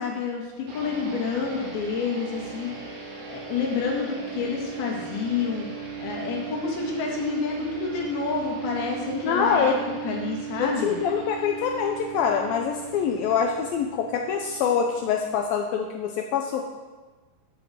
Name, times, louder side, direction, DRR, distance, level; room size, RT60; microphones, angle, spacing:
voice 1, 0.0-2.7 3.3-5.7 6.0-9.8 10.0-11.0, left 5 dB, 65° left, 0 dB, 3.7 m, -29 dB
sound 1, 0.7-15.5, right 7 dB, 80° right, 4.8 m, -38 dB
voice 2, 9.2-9.8 10.6-16.7, left 7 dB, 80° left, 3 dB, 2.2 m, -25 dB
10.0 x 7.9 x 7.6 m, 1.3 s
omnidirectional pair, 4.9 m